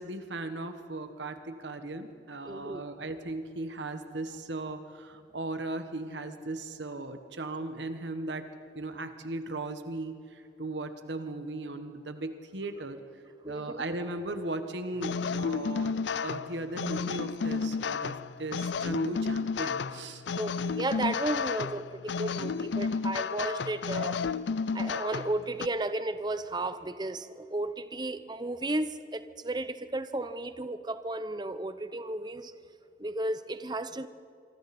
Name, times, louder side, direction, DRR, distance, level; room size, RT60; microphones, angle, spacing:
voice 1, 0.0-8.5 8.7-13.0 13.4-20.2, right 2 dB, 80° right, 8 dB, 1.4 m, -37 dB
voice 2, 2.5-2.8 13.4-13.8 20.4-24.2 24.7-32.5 33.0-34.1, right 2 dB, 25° right, 11 dB, 0.8 m, -34 dB
sound 1, 15.0-25.7, left 5 dB, 75° left, 0.5 m, -32 dB
26.5 x 24.5 x 4.3 m, 2.4 s
head